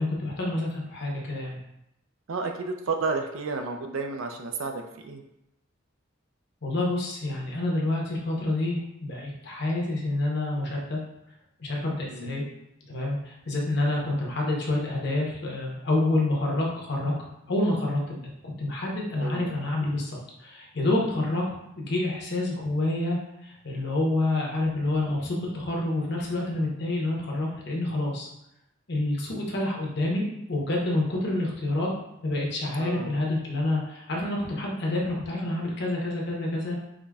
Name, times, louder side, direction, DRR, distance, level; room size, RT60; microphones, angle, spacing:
voice 1, 0.0-1.6 6.6-11.0 11.6-12.4 12.9-17.1 17.5-18.3 18.6-21.4 21.8-28.3 28.9-31.9 32.2-36.8, left 2 dB, 55° left, -2 dB, 0.9 m, -28 dB
voice 2, 2.3-5.2 12.1-12.5 19.1-19.5 32.8-33.2, right 4 dB, 85° right, 4 dB, 0.5 m, -32 dB
4.8 x 2.7 x 2.3 m, 0.85 s
head